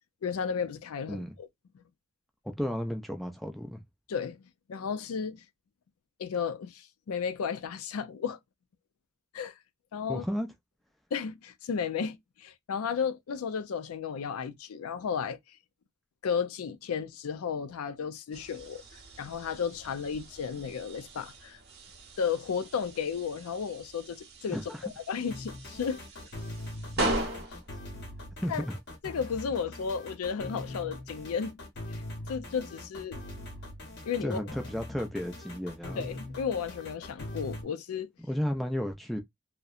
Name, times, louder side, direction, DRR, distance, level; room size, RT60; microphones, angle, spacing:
voice 1, 0.2-1.5 1.7-1.8 4.1-4.4 4.7-5.4 6.2-8.4 9.3-9.5 9.9-10.2 11.1-15.4 16.2-18.8 19.2-21.6 22.2-26.0 28.5-28.6 29.0-31.6 31.9-32.0 32.3-33.2 34.0-34.4 36.0-38.1, left 6 dB, 85° left, 0.4 m, -33 dB
voice 2, 2.6-3.8 10.1-10.5 24.5-24.8 28.4-28.8 34.2-36.1 38.2-39.2, equal, ahead, 0.4 m, -33 dB
sound 1, 18.3-29.2, right 1 dB, 50° right, 0.9 m, -39 dB
sound 2, 25.3-37.6, left 1 dB, 50° left, 0.8 m, -42 dB
2.7 x 2.1 x 2.3 m
head